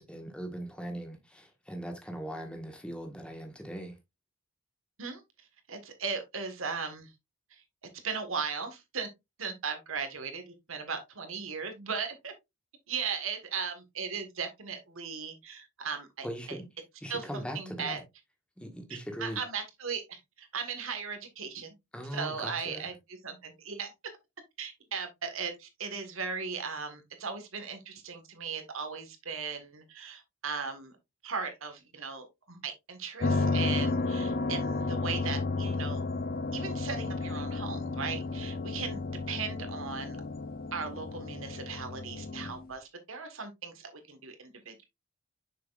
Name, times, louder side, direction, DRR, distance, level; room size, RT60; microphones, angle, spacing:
voice 1, 0.0-4.0 16.2-16.7 17.0-18.0 18.6-19.4 21.9-22.9, equal, 5° left, 1.4 m, -40 dB
voice 2, 5.7-7.1 7.5-7.6 8.0-9.1 9.4-12.3 12.9-16.6 17.1-18.0 18.9-21.7 22.1-22.9 23.2-23.9 24.6-30.9 31.2-36.2 36.5-40.2 40.7-44.8, right 5 dB, 65° right, 1.5 m, -37 dB
sound 1, 33.2-42.6, left 3 dB, 40° left, 0.6 m, -32 dB
6.7 x 6.0 x 2.4 m
head